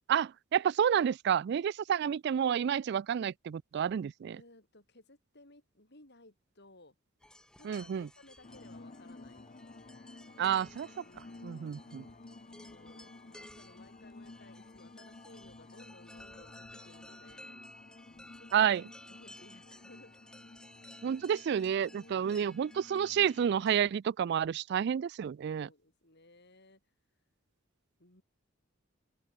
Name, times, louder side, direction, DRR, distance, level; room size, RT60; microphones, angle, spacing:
voice 1, 0.1-4.4 7.6-8.1 10.4-10.9 11.4-12.0 18.5-18.8 21.0-25.7, right 8 dB, 55° right, 0.3 m, -30 dB
voice 2, 4.3-7.0 7.6-9.5 11.0-11.9 12.5-17.6 18.1-18.8 19.1-20.1 21.9-22.5 25.5-26.8 28.0-28.2, left 2 dB, 55° left, 7.8 m, -59 dB
sound 1, 7.2-23.8, left 1 dB, 5° left, 1.4 m, -56 dB
sound 2, 8.4-23.8, left 2 dB, 35° left, 0.7 m, -53 dB
open air
head